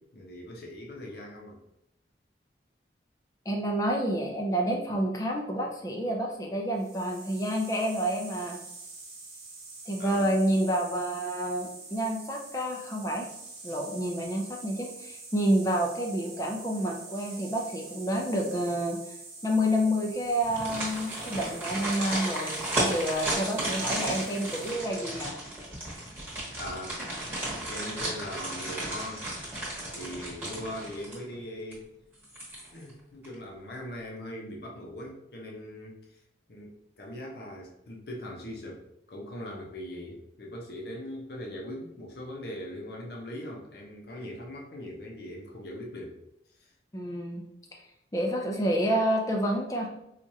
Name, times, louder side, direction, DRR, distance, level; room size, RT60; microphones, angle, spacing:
voice 1, 0.0-1.6 10.0-10.3 26.6-27.0 27.7-29.3 29.9-31.9 32.7-36.0 36.5-46.2, left 1 dB, 60° left, -1 dB, 0.7 m, -40 dB
voice 2, 3.5-8.6 9.9-13.3 13.6-19.0 19.4-25.3 46.9-47.4 48.1-49.9, equal, 20° left, 0 dB, 0.5 m, -29 dB
sound 1, 6.7-24.7, right 3 dB, 60° right, 1.2 m, -45 dB
sound 2, 20.4-31.4 31.7-31.8 32.2-32.9 33.2-33.3, right 1 dB, 10° right, 1.2 m, -34 dB
4.6 x 2.5 x 2.7 m, 0.83 s
head